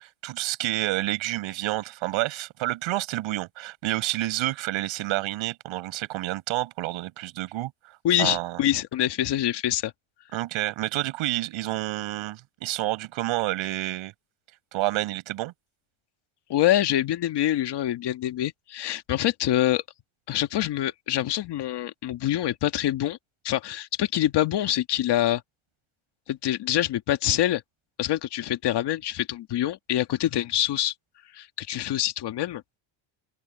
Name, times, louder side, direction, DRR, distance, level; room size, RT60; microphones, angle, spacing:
voice 1, 0.0-7.7 8.2-8.6 10.3-14.1 14.7-15.5, right 16 dB, 75° right, 5.5 m, -29 dB
voice 2, 8.0-9.9 16.5-19.8 20.3-23.2 23.4-25.4 26.3-27.6 28.0-30.9 31.3-32.6, left 12 dB, 55° left, 2.0 m, -25 dB
open air
cardioid pair, 140°, 48 cm